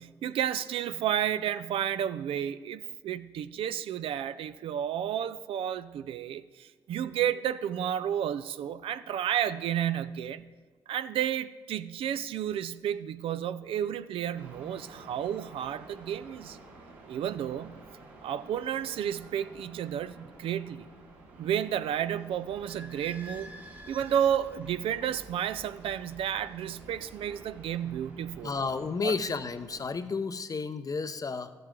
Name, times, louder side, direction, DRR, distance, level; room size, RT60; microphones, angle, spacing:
voice 1, 0.0-10.5 10.9-16.6 17.1-17.8 18.2-20.9 21.4-23.5 23.9-28.5 29.0-29.1, right 10 dB, 70° right, 13 dB, 0.4 m, -31 dB
sound 1, 14.3-29.9, right 2 dB, 90° right, 1.6 m, -52 dB
Idling / Squeak, 22.5-28.9, equal, 20° right, 1.3 m, -51 dB
voice 2, 28.4-31.5, left 4 dB, 35° left, 11 dB, 0.7 m, -32 dB
13.0 x 7.7 x 3.7 m, 1.4 s
hypercardioid pair, 50°, 10 cm